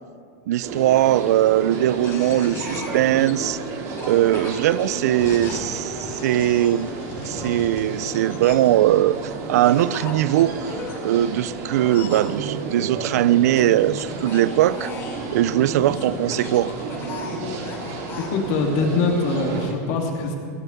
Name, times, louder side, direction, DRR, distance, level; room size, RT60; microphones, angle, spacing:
voice 1, 0.5-3.6 4.0-6.9 7.2-10.5 11.0-14.9 15.3-16.7, right 13 dB, 85° right, 19 dB, 0.4 m, -20 dB
sound 1, 0.6-19.7, right 3 dB, 55° right, 3.0 m, -32 dB
sound 2, 2.0-3.3 4.0-8.8 9.6-11.0 11.9-12.3 13.5-15.3 16.2-18.3, left 4 dB, 30° left, 4.4 m, -38 dB
voice 2, 18.2-20.3, left 3 dB, 50° left, 1 dB, 2.7 m, -23 dB
17.5 x 7.3 x 8.4 m, 2.2 s
supercardioid pair, 150°, 8 cm